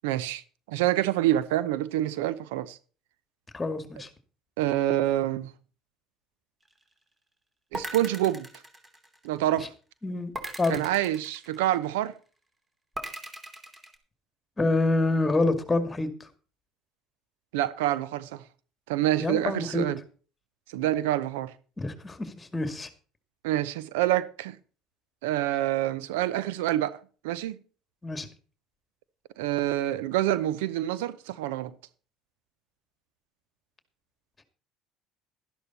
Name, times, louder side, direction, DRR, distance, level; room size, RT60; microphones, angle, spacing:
voice 1, 0.0-0.4 0.7-2.8 4.6-5.5 7.7-8.5 9.2-9.7 10.7-12.1 17.5-18.4 18.9-20.0 20.7-21.5 23.4-24.6 25.2-27.0 27.2-27.6 29.4-31.7, right 13 dB, 80° right, 0.7 m, -27 dB
voice 2, 3.5-4.1 10.0-10.3 10.6-10.8 14.6-16.1 19.2-19.9 21.8-22.9 28.0-28.3, left 2 dB, 20° left, 2.2 m, -26 dB
sound 1, 7.7-9.5 10.3-12.0 13.0-13.9, right 1 dB, 20° right, 2.9 m, -39 dB
12.5 x 11.0 x 4.1 m
hypercardioid pair, 70°, 0 cm